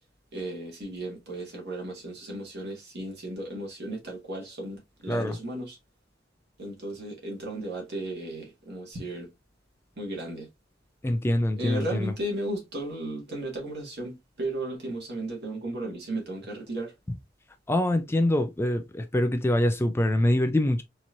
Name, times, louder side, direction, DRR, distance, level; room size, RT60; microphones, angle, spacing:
voice 1, 0.3-5.8 6.6-9.3 10.0-10.5 11.6-16.9, right 1 dB, 55° right, 1.9 m, -35 dB
voice 2, 5.1-5.4 11.0-12.1 17.1-17.2 17.7-20.8, left 1 dB, 10° left, 0.3 m, -25 dB
4.3 x 3.0 x 2.5 m
head